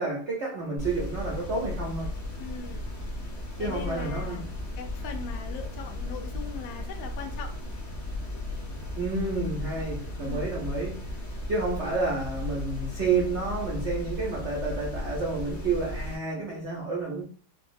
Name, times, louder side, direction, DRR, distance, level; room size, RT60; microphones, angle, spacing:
voice 1, 0.0-2.1 3.6-4.4 9.0-11.1 11.5-17.2, right 3 dB, 80° right, 0.6 m, -30 dB
sound 1, 0.8-16.1, left 2 dB, 45° left, 1.0 m, -35 dB
voice 2, 2.4-2.9 3.6-4.4 4.8-7.6 10.3-10.5, left 5 dB, 85° left, 1.4 m, -40 dB
4.7 x 2.0 x 2.6 m
omnidirectional pair, 2.1 m